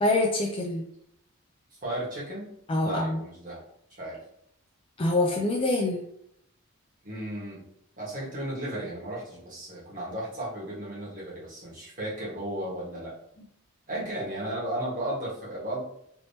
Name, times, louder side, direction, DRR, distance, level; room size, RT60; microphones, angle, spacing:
voice 1, 0.0-0.8 2.7-3.2 5.0-6.1, left 2 dB, 25° left, 1 dB, 0.3 m, -25 dB
voice 2, 1.8-2.5 2.8-3.6 4.0-4.2 7.0-7.6 8.0-13.1 13.9-15.8, right 1 dB, 35° right, -7 dB, 1.3 m, -34 dB
3.4 x 2.8 x 2.7 m, 0.74 s
head